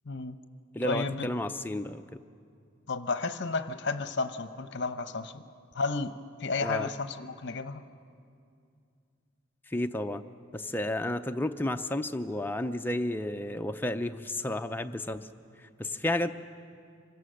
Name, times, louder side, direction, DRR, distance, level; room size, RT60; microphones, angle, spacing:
voice 1, 0.1-0.4 0.8-1.3 2.9-5.4 5.7-6.1 6.4-7.8, left 3 dB, 55° left, 10 dB, 0.8 m, -32 dB
voice 2, 0.7-2.2 6.6-6.9 9.7-10.2 10.5-15.3 15.6-16.3, left 1 dB, 10° left, 7 dB, 0.5 m, -32 dB
26.5 x 16.5 x 6.4 m, 2.4 s
head